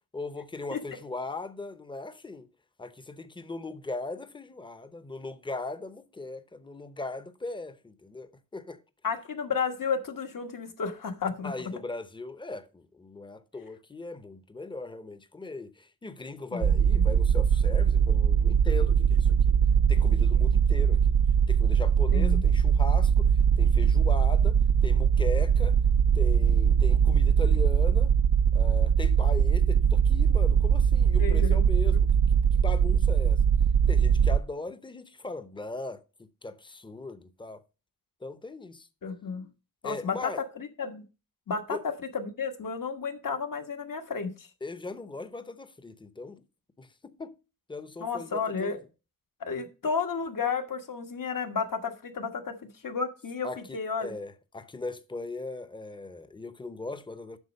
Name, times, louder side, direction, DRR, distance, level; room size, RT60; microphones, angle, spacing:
voice 1, 0.1-2.5 2.8-8.8 11.4-19.5 19.9-21.1 21.5-25.8 26.1-28.1 28.5-33.4 33.9-37.6 38.2-38.9 39.8-40.4 41.7-41.8 44.6-46.4 46.8-47.3 47.7-48.8 53.4-57.4, left 3 dB, 15° left, 0.7 m, -39 dB
voice 2, 9.0-11.5 16.5-16.8 22.1-22.4 31.2-31.6 31.9-32.0 39.0-39.5 39.8-41.0 41.5-44.5 48.0-48.8 49.4-53.5 53.7-54.1, left 5 dB, 65° left, 1.5 m, -32 dB
sound 1, 16.6-34.4, right 7 dB, 75° right, 0.5 m, -22 dB
8.2 x 6.1 x 5.3 m
wide cardioid pair, 125°, 35 cm